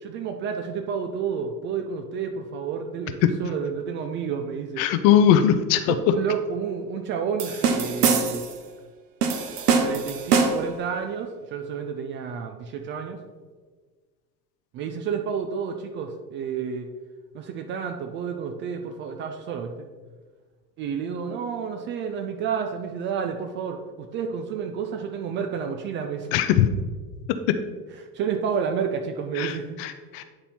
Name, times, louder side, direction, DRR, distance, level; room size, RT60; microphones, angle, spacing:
voice 1, 0.0-4.8 5.9-8.5 9.8-13.2 14.7-16.9 17.3-19.8 20.8-26.3 28.1-29.8, right 6 dB, 25° right, 5 dB, 0.4 m, -30 dB
voice 2, 4.8-5.9 26.3-26.7 29.4-30.2, left 10 dB, 40° left, 10 dB, 0.6 m, -20 dB
sound 1, 7.4-8.6 9.2-10.8, right 5 dB, 70° right, 0.8 m, -23 dB
8.9 x 4.1 x 4.2 m, 1.4 s
figure-of-eight pair, 75°, 48 cm